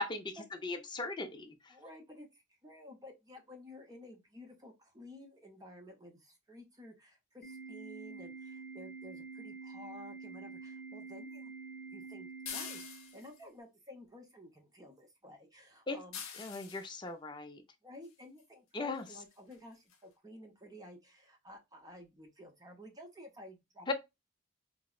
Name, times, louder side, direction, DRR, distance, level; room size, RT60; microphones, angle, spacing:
voice 1, 0.0-1.5 15.9-16.0 16.4-17.6 18.7-19.0 23.9-24.0, left 3 dB, 20° left, 0.5 m, -37 dB
voice 2, 1.7-11.5 11.9-12.9 13.1-16.2 17.8-23.9, left 1 dB, 20° right, 0.7 m, -53 dB
Organ, 7.4-13.4, right 4 dB, 40° left, 1.0 m, -47 dB
sound 1, 12.5-13.4 16.1-16.9 18.4-18.5 19.1-19.2 19.5-19.6 19.9-20.0, left 7 dB, 75° left, 0.7 m, -44 dB
4.6 x 2.0 x 2.3 m
head